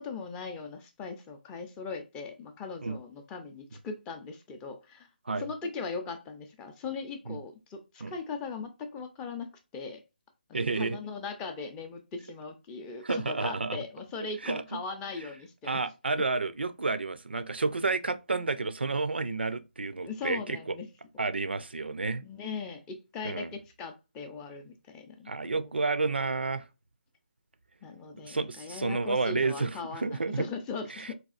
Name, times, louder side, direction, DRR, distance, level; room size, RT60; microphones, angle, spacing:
voice 1, 0.0-5.1 5.4-9.5 9.7-10.0 10.5-15.8 20.0-20.9 22.2-25.7 27.8-31.1, left 4 dB, 15° left, 0.4 m, -39 dB
voice 2, 10.5-11.0 13.0-13.8 14.4-14.6 15.6-20.6 21.2-22.2 23.2-23.5 25.3-26.7 28.2-30.5 31.0-31.1, right 3 dB, 80° right, 0.4 m, -30 dB
4.0 x 2.3 x 2.4 m
figure-of-eight pair, 150°, 6 cm